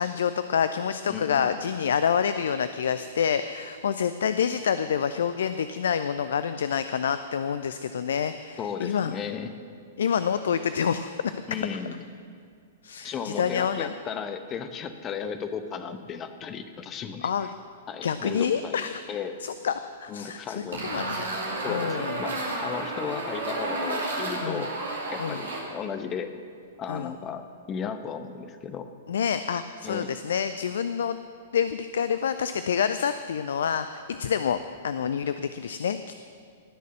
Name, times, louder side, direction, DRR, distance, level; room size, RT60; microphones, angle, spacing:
voice 1, 0.0-9.2 10.0-11.3 12.8-13.9 17.2-17.5 18.0-19.0 19.4-19.7 20.0-21.2 21.7-22.2 24.4-24.7 25.2-25.5 26.9-27.1 29.1-31.2 31.5-34.6 34.8-36.1, left 7 dB, 60° left, 12 dB, 0.4 m, -27 dB
voice 2, 1.1-1.6 8.6-9.5 11.5-12.0 13.0-17.3 17.9-19.4 20.1-21.1 21.6-24.7 25.1-26.3 26.8-28.9 29.8-30.1, left 7 dB, 25° left, 9 dB, 0.9 m, -35 dB
sound 1, 20.7-25.6, right 2 dB, 65° right, 2.9 m, -31 dB
18.5 x 6.6 x 7.7 m, 2.2 s
figure-of-eight pair, 105°, 0 cm